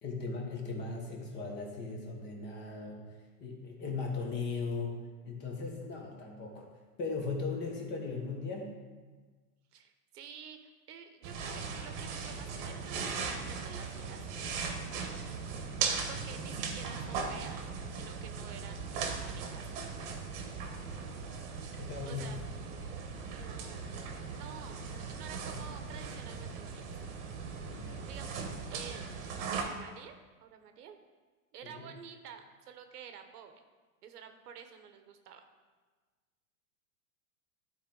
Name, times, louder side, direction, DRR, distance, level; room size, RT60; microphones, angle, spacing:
voice 1, 0.0-3.0 3.4-5.0 5.2-6.7 7.0-8.7 21.8-22.3 27.7-28.1 31.6-31.9, left 4 dB, 25° left, 0 dB, 1.2 m, -38 dB
voice 2, 9.7-14.2 15.6-17.6 17.9-19.7 21.8-22.4 23.4-23.9 24.3-27.0 28.1-29.1 29.4-31.0 31.5-33.6 34.0-35.5, right 7 dB, 75° right, 7 dB, 1.1 m, -50 dB
sound 1, 11.2-29.6, right 5 dB, 40° right, 1.2 m, -38 dB
12.5 x 4.4 x 3.8 m, 1.4 s
supercardioid pair, 150°, 46 cm